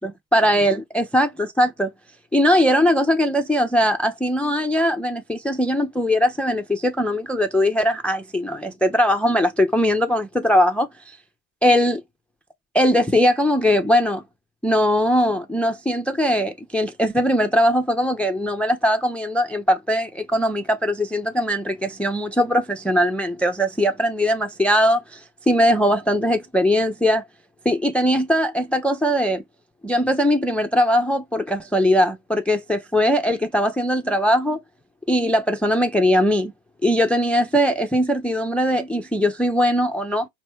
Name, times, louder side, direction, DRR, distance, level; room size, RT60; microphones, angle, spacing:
voice 1, 0.0-1.9 2.3-10.9 11.6-12.0 12.7-14.2 14.6-27.3 27.7-29.4 29.8-34.6 35.1-36.5 36.8-40.3, equal, 5° left, 0.4 m, -20 dB
4.2 x 3.1 x 3.0 m
hypercardioid pair, 90°, 40 cm